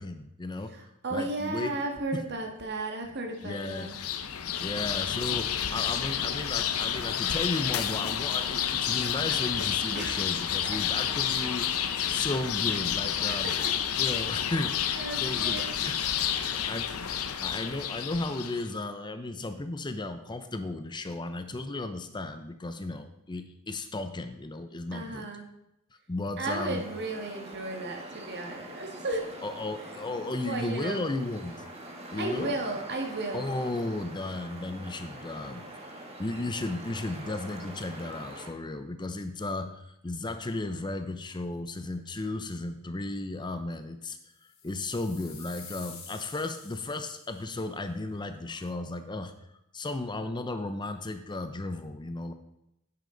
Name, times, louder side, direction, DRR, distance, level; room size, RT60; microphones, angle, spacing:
voice 1, 0.0-0.8 1.1-1.8 2.1-2.2 3.4-3.9 4.6-13.5 14.0-16.2 16.5-25.3 26.1-26.8 29.4-31.6 32.1-32.6 33.3-49.3 49.7-52.3, left 2 dB, 20° left, 9 dB, 0.6 m, -35 dB
voice 2, 0.7-3.9 9.9-10.3 11.9-12.1 13.0-13.7 14.9-15.7 24.9-25.5 26.4-29.2 29.8-30.0 30.4-31.1 32.2-33.5, right 2 dB, 55° right, 3 dB, 1.8 m, -34 dB
sound 1, 3.5-18.7, left 9 dB, 85° left, 0.7 m, -30 dB
sound 2, 26.5-38.5, right 1 dB, 30° right, 1.7 m, -44 dB
sound 3, 44.4-47.6, left 6 dB, 65° left, 2.9 m, -48 dB
10.0 x 9.9 x 3.9 m, 0.86 s
head